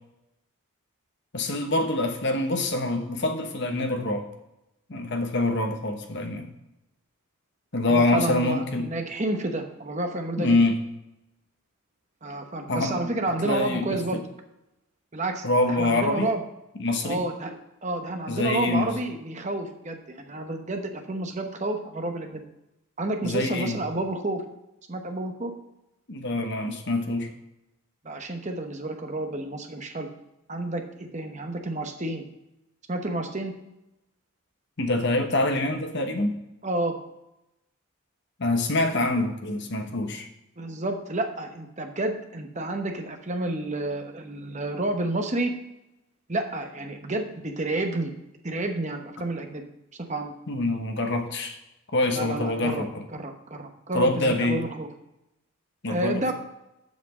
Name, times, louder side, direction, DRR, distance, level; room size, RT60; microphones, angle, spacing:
voice 1, 1.3-4.3 4.9-6.5 7.7-8.9 10.4-10.8 12.7-13.0 13.4-14.2 15.4-16.3 16.8-17.2 18.3-18.9 23.2-23.8 26.1-27.3 34.8-36.4 38.4-40.3 50.5-51.6 51.9-53.0 53.9-54.6 55.8-56.3, left 2 dB, 50° left, 5 dB, 1.1 m, -25 dB
voice 2, 7.9-10.6 12.2-14.2 15.1-16.4 17.0-22.5 23.0-24.4 24.9-25.5 28.0-30.1 30.5-32.2 32.9-33.5 36.6-37.0 40.6-45.5 46.3-48.1 48.4-49.6 50.1-50.3 52.1-52.8 53.1-54.9 55.9-56.3, right 2 dB, 30° right, 4 dB, 1.0 m, -30 dB
7.3 x 6.0 x 7.2 m, 0.90 s
head